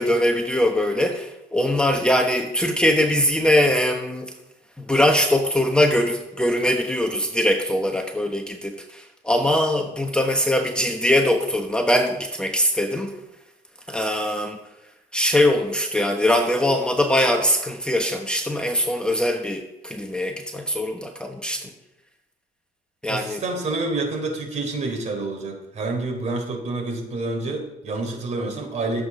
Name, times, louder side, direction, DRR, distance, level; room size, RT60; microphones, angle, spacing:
voice 1, 0.0-4.3 4.8-13.1 13.9-14.6 15.1-21.7 23.0-23.4, left 1 dB, 5° left, 3 dB, 1.0 m, -22 dB
voice 2, 23.1-29.0, right 2 dB, 45° right, 2 dB, 3.6 m, -28 dB
13.5 x 8.0 x 5.2 m, 0.93 s
cardioid pair, 110°, 17 cm